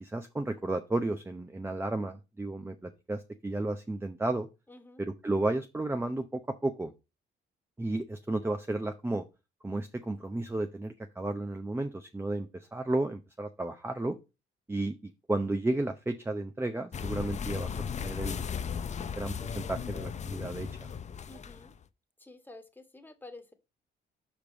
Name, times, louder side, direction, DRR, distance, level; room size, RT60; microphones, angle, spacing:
voice 1, 0.0-4.5 5.0-6.9 7.8-9.2 9.6-14.1 14.7-18.5 19.2-20.9, right 2 dB, 10° right, 7 dB, 0.7 m, -33 dB
voice 2, 4.7-5.0 21.3-21.7 22.2-23.5, left 2 dB, 10° left, 5 dB, 1.6 m, -50 dB
sound 1, 16.9-21.8, left 7 dB, 35° left, 0.6 m, -36 dB
5.2 x 5.2 x 6.1 m, 0.27 s
cardioid pair, 90°, 20 cm